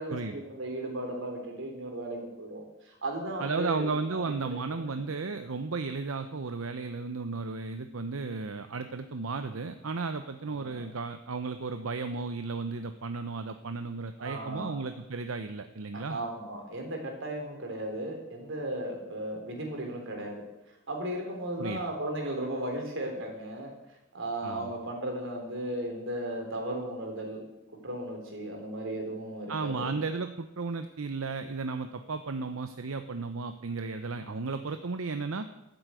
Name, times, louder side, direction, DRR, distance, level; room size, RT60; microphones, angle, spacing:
voice 1, 0.0-4.6 4.9-5.0 10.5-10.9 14.2-14.8 15.9-20.4 20.9-23.7 24.1-27.4 27.8-30.0, right 1 dB, 65° right, 2 dB, 3.9 m, -36 dB
voice 2, 3.4-16.2 21.6-21.8 24.4-24.7 29.5-35.5, right 4 dB, 85° right, 8 dB, 0.8 m, -34 dB
13.0 x 7.9 x 9.1 m, 0.95 s
head